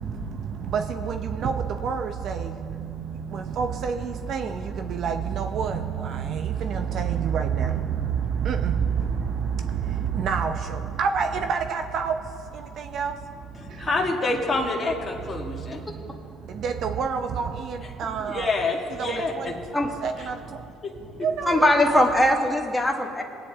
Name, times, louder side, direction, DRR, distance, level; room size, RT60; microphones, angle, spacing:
voice 1, 0.7-1.5 1.8-2.4 3.3-4.5 5.0-5.8 6.1-7.7 8.5-8.7 10.2-10.5 11.0-12.1 12.9-13.1 16.6-18.5 19.0-19.1 19.4-19.5 20.0-20.3 21.2-21.5 21.8-22.2, right 6 dB, 60° right, 7 dB, 0.7 m, -27 dB
voice 2, 13.5-15.8 18.1-19.5 20.2-20.3 20.8-20.9, left 2 dB, 30° left, -1 dB, 1.8 m, -27 dB
voice 3, 21.5-23.2, left 1 dB, 5° left, 0 dB, 1.6 m, -20 dB
20.0 x 9.3 x 3.6 m, 2.4 s
supercardioid pair, 75°, 0 cm